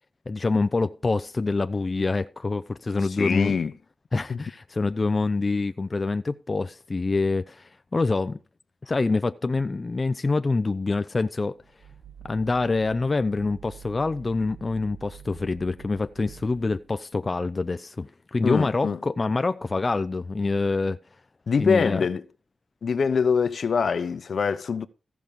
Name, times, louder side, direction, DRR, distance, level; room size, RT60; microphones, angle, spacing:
voice 1, 0.3-3.6 4.1-8.4 8.8-11.5 12.2-21.0 21.6-22.1, left 3 dB, 35° left, 0.6 m, -26 dB
voice 2, 3.2-3.7 4.3-4.4 18.4-19.0 21.5-22.2 22.8-24.9, left 5 dB, 65° left, 0.9 m, -24 dB
sound 1, 11.5-17.0, right 8 dB, 50° right, 2.1 m, -47 dB
15.0 x 6.1 x 5.2 m
wide cardioid pair, 90°, 0 cm